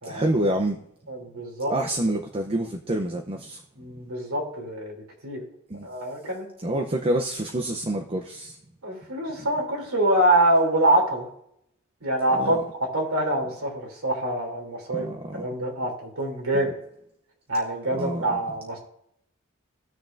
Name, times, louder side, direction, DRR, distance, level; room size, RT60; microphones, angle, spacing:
voice 1, 0.0-0.8 1.7-3.6 5.7-5.9 6.6-8.6 9.4-9.5 12.3-12.6 14.9-15.4 16.5-16.7 17.9-18.4, right 1 dB, 25° right, 3 dB, 0.7 m, -27 dB
voice 2, 1.1-1.7 3.8-4.9 5.2-5.4 5.8-6.4 6.7-6.8 8.8-11.3 12.0-12.6 12.9-15.0 15.3-16.7 17.5-18.8, right 1 dB, 75° right, 0 dB, 3.1 m, -25 dB
17.0 x 6.6 x 2.5 m, 0.74 s
head